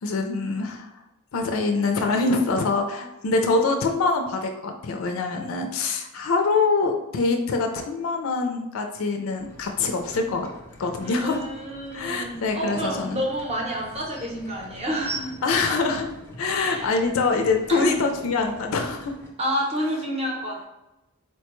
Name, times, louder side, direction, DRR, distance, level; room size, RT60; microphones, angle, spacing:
voice 1, 0.0-0.9 1.3-10.5 10.8-11.4 11.9-13.2 15.4-16.1 16.4-19.1 19.8-19.9, left 3 dB, 70° left, 4 dB, 0.4 m, -24 dB
sound 1, 9.4-19.3, left 1 dB, 10° left, 0.4 m, -47 dB
voice 2, 11.0-15.7 16.6-16.9 17.7-18.0 19.4-20.7, equal, 30° right, -1 dB, 0.7 m, -29 dB
sound 2, 13.8-14.3 15.0-16.6 17.3-17.4, right 4 dB, 75° right, 0.9 m, -37 dB
4.3 x 2.2 x 3.0 m, 0.95 s
head